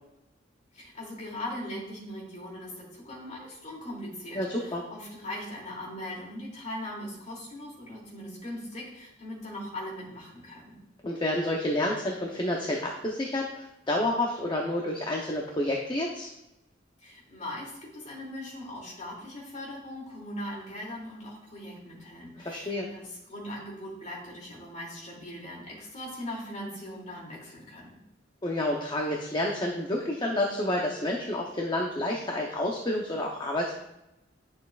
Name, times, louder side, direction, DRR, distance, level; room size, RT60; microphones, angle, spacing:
voice 1, 0.7-10.8 17.0-28.0, left 1 dB, 40° left, -4 dB, 2.7 m, -40 dB
voice 2, 4.3-4.8 11.0-16.3 22.4-22.9 28.4-33.8, left 1 dB, 25° left, -1 dB, 0.8 m, -29 dB
10.5 x 6.5 x 2.4 m, 0.90 s
head